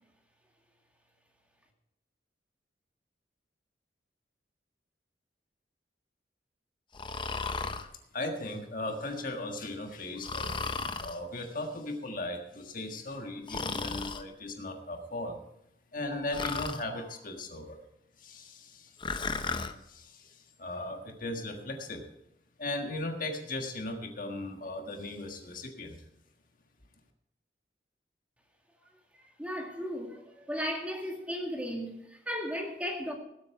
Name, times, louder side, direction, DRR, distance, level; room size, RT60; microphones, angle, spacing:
Breathing, 6.9-7.9 10.2-11.2 13.5-14.2 16.3-16.8 19.0-19.7, left 4 dB, 25° left, 0.7 m, -34 dB
voice 1, 8.1-10.7 11.0-15.4 15.9-17.8 18.2-19.5 19.8-22.1 22.6-26.0, left 2 dB, 50° left, 1.6 m, -37 dB
voice 2, 29.4-33.1, equal, 5° right, 1.9 m, -35 dB
19.0 x 8.3 x 4.6 m
head